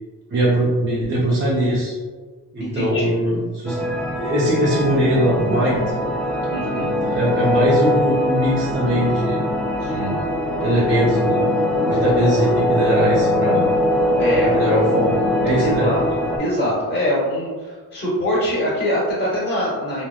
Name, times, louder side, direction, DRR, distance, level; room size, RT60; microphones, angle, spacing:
voice 1, 0.3-1.9 2.5-3.8 4.2-5.8 6.8-9.4 9.8-10.3 10.6-11.4 11.9-13.6 14.4-15.1 15.4-15.9, equal, 35° right, -7 dB, 0.6 m, -20 dB
voice 2, 2.6-3.1 6.5-6.8 14.2-14.5 15.6-16.0 16.4-20.1, equal, 25° left, -8 dB, 1.2 m, -23 dB
sound 1, 3.7-16.4, left 1 dB, 5° left, 0.3 m, -22 dB
3.3 x 2.2 x 2.3 m, 1.5 s
cardioid pair, 90°, 36 cm